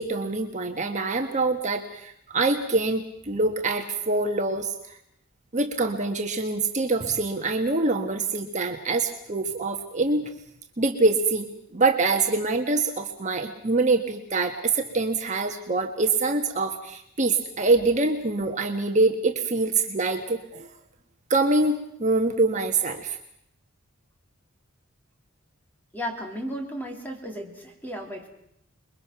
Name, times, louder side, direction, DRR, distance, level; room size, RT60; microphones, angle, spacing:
voice 1, 0.0-5.0 5.5-10.3 10.8-20.7 21.3-23.2, right 3 dB, 35° right, 3 dB, 1.5 m, -25 dB
voice 2, 25.9-28.3, equal, 10° left, 2 dB, 3.4 m, -34 dB
28.5 x 22.5 x 6.0 m, 0.74 s
head